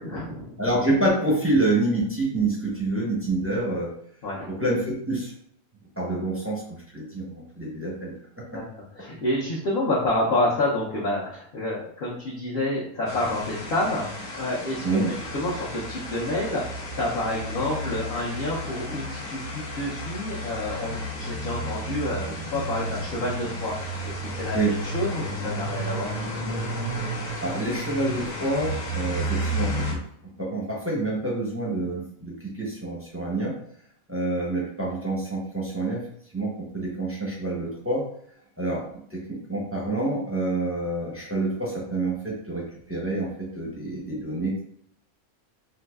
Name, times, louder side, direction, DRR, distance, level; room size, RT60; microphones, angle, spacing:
voice 1, 0.0-0.5 4.2-4.5 8.5-8.6 9.0-14.0 14.3-16.6 17.0-23.7 24.2-26.1, left 1 dB, 50° left, -7 dB, 0.8 m, -28 dB
voice 2, 0.6-3.9 4.5-5.3 6.0-8.1 8.5-8.6 14.8-15.1 24.5-24.7 27.4-30.0 30.4-33.5 34.1-36.0 36.3-38.0 38.6-38.8 39.1-44.6, right 2 dB, 15° right, -5 dB, 0.5 m, -27 dB
sound 1, 13.1-29.9, equal, 70° left, 1.1 m, -32 dB
3.9 x 2.5 x 2.3 m, 0.66 s
omnidirectional pair, 1.5 m